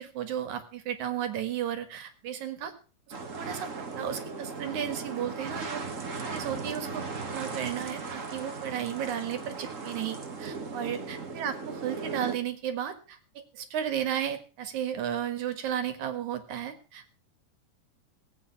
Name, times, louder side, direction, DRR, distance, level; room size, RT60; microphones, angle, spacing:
voice 1, 0.0-2.7 3.3-3.7 4.0-5.8 6.3-7.0 7.3-17.1, right 9 dB, 60° right, 10 dB, 3.0 m, -34 dB
sound 1, 3.1-12.4, right 4 dB, 40° right, 1.1 m, -37 dB
18.0 x 8.8 x 5.8 m, 0.36 s
omnidirectional pair, 4.0 m